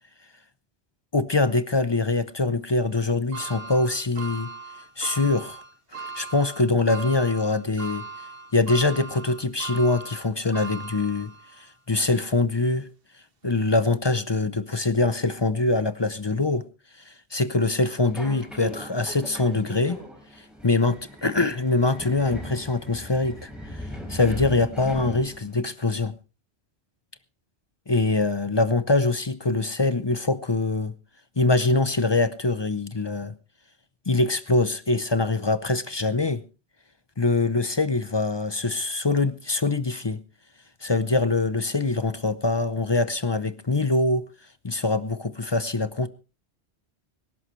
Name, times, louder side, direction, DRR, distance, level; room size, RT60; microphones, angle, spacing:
voice 1, 1.1-4.5 5.0-5.6 5.9-8.1 8.5-11.3 11.6-12.9 13.4-16.7 17.0-20.0 20.4-26.1 27.9-30.9 31.4-33.3 34.1-36.4 37.2-40.2 40.8-44.3 44.6-46.1, left 3 dB, 30° left, 0.6 m, -24 dB
sound 1, 3.3-11.7 12.2-12.3 13.4-13.5, right 4 dB, 55° right, 1.6 m, -39 dB
Subway metro underground, 18.1-25.6, equal, ahead, 4.0 m, -39 dB
25.0 x 11.5 x 3.1 m
omnidirectional pair, 1.2 m